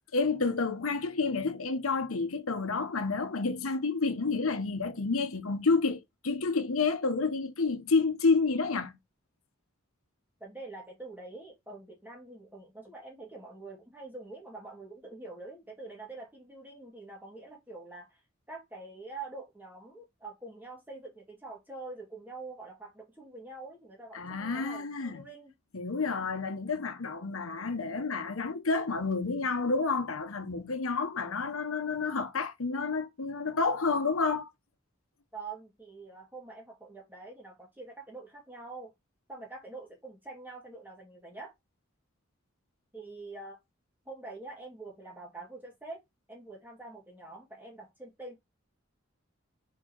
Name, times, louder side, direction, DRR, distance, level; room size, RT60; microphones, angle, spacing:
voice 1, 0.1-8.9 24.1-25.2 25.7-34.5, left 4 dB, 80° left, 1.0 m, -29 dB
voice 2, 10.4-18.2 18.5-25.5 35.3-38.9 39.3-41.5 42.9-43.6 44.1-46.0 46.3-48.4, right 3 dB, 10° right, 2.3 m, -45 dB
5.1 x 4.5 x 4.5 m
head